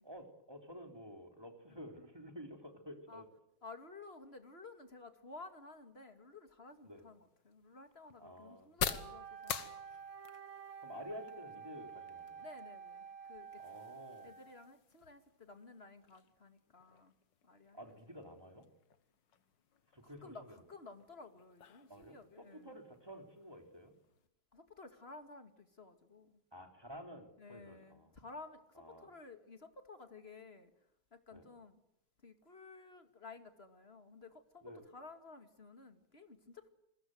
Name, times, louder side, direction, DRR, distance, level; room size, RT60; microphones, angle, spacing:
voice 1, 0.0-3.3 6.8-7.0 8.2-8.7 10.8-12.5 13.6-14.3 17.7-18.7 19.9-20.5 21.9-23.9 26.5-28.1 28.8-29.1 31.3-31.5 34.6-34.8, equal, 10° right, 5 dB, 3.7 m, -51 dB
voice 2, 3.6-9.7 12.4-13.6 14.2-17.1 17.4-17.8 18.3-18.4 20.0-22.7 24.5-26.4 27.4-30.7 31.1-31.8 32.2-36.7, left 3 dB, 30° left, 8 dB, 2.3 m, -54 dB
sound 1, 6.7-24.3, left 8 dB, 60° left, 2.0 m, -49 dB
Wind instrument woodwind instrument, 8.8-14.7, right 7 dB, 45° right, 1.9 m, -50 dB
28.5 x 21.5 x 8.0 m, 0.79 s
omnidirectional pair, 2.3 m